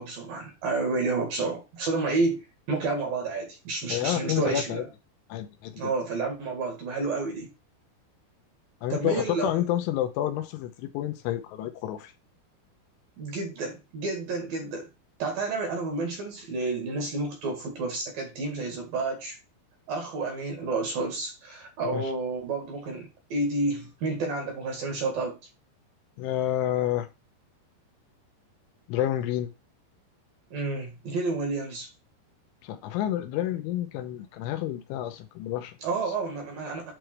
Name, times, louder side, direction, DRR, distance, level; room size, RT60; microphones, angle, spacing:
voice 1, 0.0-4.9 5.8-7.5 8.9-9.6 13.2-14.9 15.2-19.4 19.9-25.4 30.5-31.9 35.8-36.9, right 3 dB, 55° right, 3.0 m, -30 dB
voice 2, 3.9-4.8 5.3-5.9 8.8-12.1 21.9-22.1 26.2-27.1 28.9-29.5 32.6-35.7, left 12 dB, 85° left, 3.1 m, -29 dB
8.8 x 3.3 x 4.5 m
omnidirectional pair, 5.7 m